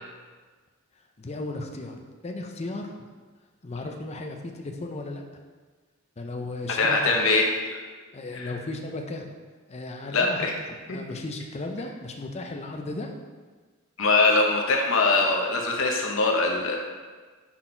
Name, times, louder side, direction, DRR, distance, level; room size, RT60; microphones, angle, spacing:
voice 1, 1.2-3.1 3.6-5.2 6.2-7.2 8.1-9.3 9.7-10.5 10.9-13.1, left 2 dB, 30° left, 3 dB, 0.6 m, -35 dB
voice 2, 6.8-7.8 8.3-8.5 10.1-10.5 14.0-16.8, left 3 dB, 65° left, 0 dB, 1.0 m, -22 dB
5.9 x 4.2 x 4.4 m, 1.4 s
head